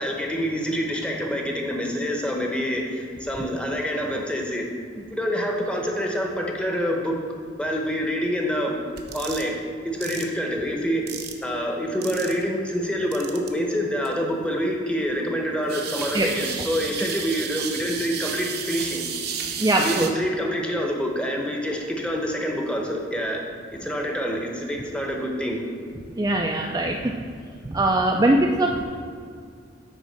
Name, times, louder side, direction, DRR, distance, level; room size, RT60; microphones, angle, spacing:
voice 1, 0.0-4.7 5.1-7.2 7.6-8.8 9.1-9.6 9.8-11.0 11.4-19.0 19.8-23.4 23.7-25.6, equal, 5° left, 0 dB, 0.9 m, -26 dB
sound 1, 9.0-9.5 10.0-10.2 11.1-11.4 12.0-12.4 13.1-13.5 14.0-14.1 15.7-20.1, right 7 dB, 55° right, 0.7 m, -32 dB
voice 2, 19.6-20.1 26.2-27.1 27.6-28.8, right 1 dB, 20° right, 0 dB, 0.4 m, -21 dB
9.5 x 3.7 x 6.4 m, 2.2 s
head